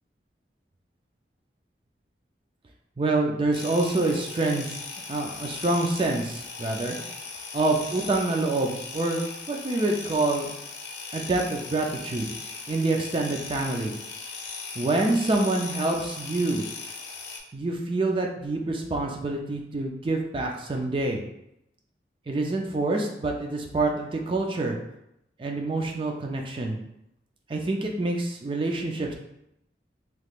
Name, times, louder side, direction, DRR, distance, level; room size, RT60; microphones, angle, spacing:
voice 1, 3.0-4.7 5.1-6.9 7.5-10.5 11.1-12.3 12.7-13.9 14.8-16.7 17.5-21.2 22.3-24.8 25.4-26.8 27.5-29.1, right 2 dB, 30° right, 1 dB, 0.4 m, -26 dB
sound 1, 3.5-17.4, left 4 dB, 70° left, 0.6 m, -38 dB
3.5 x 3.0 x 2.4 m, 0.82 s
head